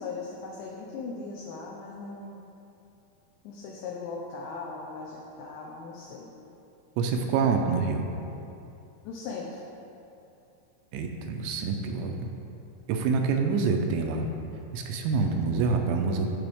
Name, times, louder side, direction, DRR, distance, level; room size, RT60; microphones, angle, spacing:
voice 1, 0.0-2.4 3.4-6.3 9.0-9.6, left 4 dB, 75° left, -3 dB, 2.8 m, -38 dB
voice 2, 7.0-8.1 10.9-12.3 12.9-14.3 14.7-16.3, right 4 dB, 80° right, 3 dB, 2.9 m, -26 dB
15.5 x 5.8 x 3.5 m, 2.8 s
omnidirectional pair, 5.6 m